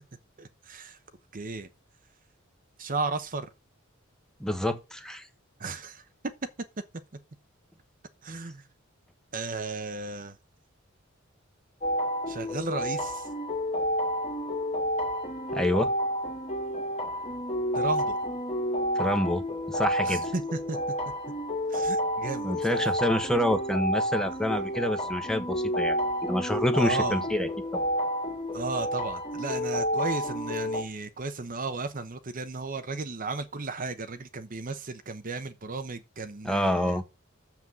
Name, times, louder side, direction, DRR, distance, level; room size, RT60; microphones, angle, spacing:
voice 1, 0.4-1.0 1.3-1.7 2.8-3.5 5.6-6.3 8.2-8.7 9.3-10.4 12.3-13.3 17.7-18.2 20.0-20.8 21.7-22.5 26.8-27.2 28.5-37.0, right 3 dB, 40° right, 0.9 m, -34 dB
voice 2, 4.4-5.3 15.5-15.9 18.9-20.3 22.4-27.9 36.4-37.0, equal, 5° left, 1.1 m, -27 dB
sound 1, 11.8-30.8, equal, 30° left, 2.2 m, -30 dB
7.2 x 6.0 x 7.7 m
head